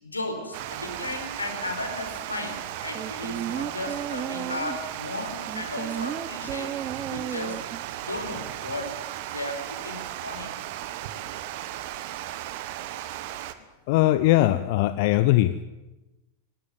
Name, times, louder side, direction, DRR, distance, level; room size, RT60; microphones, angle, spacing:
voice 1, 0.0-6.7 7.1-7.6 8.0-10.5, left 2 dB, 80° left, 5 dB, 4.5 m, -35 dB
Water, 0.5-13.5, right 13 dB, 50° right, 1.5 m, -36 dB
sound 1, 2.9-4.9 5.5-7.9 8.2-8.3, right 9 dB, 25° right, 1.0 m, -34 dB
voice 2, 13.9-15.6, left 15 dB, 50° left, 13 dB, 0.8 m, -20 dB
20.5 x 19.0 x 9.5 m, 1.0 s
figure-of-eight pair, 90°, 0 cm